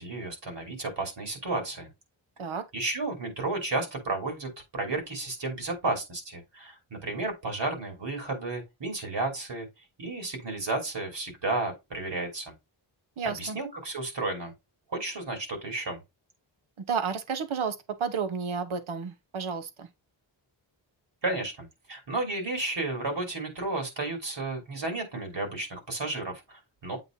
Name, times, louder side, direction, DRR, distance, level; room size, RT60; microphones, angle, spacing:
voice 1, 0.0-1.9 2.7-9.7 10.0-12.5 13.2-14.5 14.9-16.0 21.2-27.0, right 2 dB, 60° right, 3.1 m, -32 dB
voice 2, 13.2-13.6 16.8-19.9, right 6 dB, 80° right, 1.1 m, -31 dB
8.0 x 2.7 x 5.2 m
wide cardioid pair, 105°, 48 cm